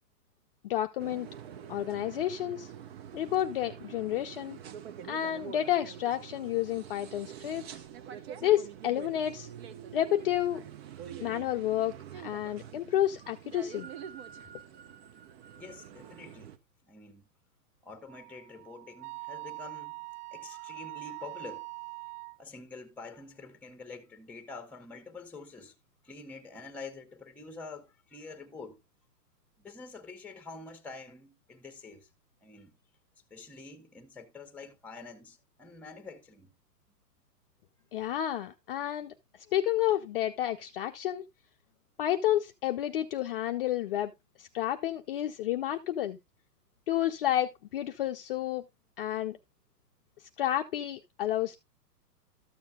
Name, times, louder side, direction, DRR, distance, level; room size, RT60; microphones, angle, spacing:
voice 1, 0.6-1.3 1.7-2.7 3.1-4.6 5.1-7.8 8.4-9.5 9.9-10.6 11.2-13.9 37.9-39.1 39.5-41.2 42.0-44.1 44.4-46.2 46.9-48.6 49.0-49.4 50.4-51.6, left 12 dB, 35° left, 0.6 m, -30 dB
sound 1, 1.0-16.6, right 9 dB, 40° right, 0.9 m, -46 dB
voice 2, 15.6-16.6 16.9-17.3 17.8-20.0 20.3-21.7 22.4-25.7 26.0-28.8 29.6-32.1 32.4-32.7 33.3-36.5, left 3 dB, 5° left, 1.1 m, -47 dB
Wind instrument woodwind instrument, 18.0-22.4, right 29 dB, 70° right, 0.7 m, -43 dB
13.0 x 7.2 x 2.3 m
hypercardioid pair, 135°, 48 cm